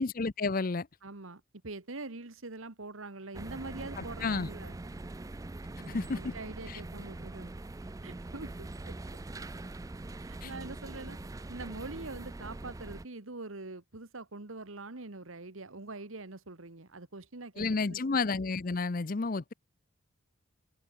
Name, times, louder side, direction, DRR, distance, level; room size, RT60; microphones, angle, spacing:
voice 1, 0.0-0.9 4.0-4.5 5.9-6.3 6.7-6.8 10.4-10.5 17.6-19.5, left 4 dB, 40° left, 0.6 m, -31 dB
voice 2, 1.0-4.8 5.8-7.5 8.0-8.9 10.2-11.2 11.5-18.0, right 3 dB, 75° right, 1.7 m, -44 dB
sound 1, 3.3-13.1, right 2 dB, 15° right, 0.3 m, -43 dB
head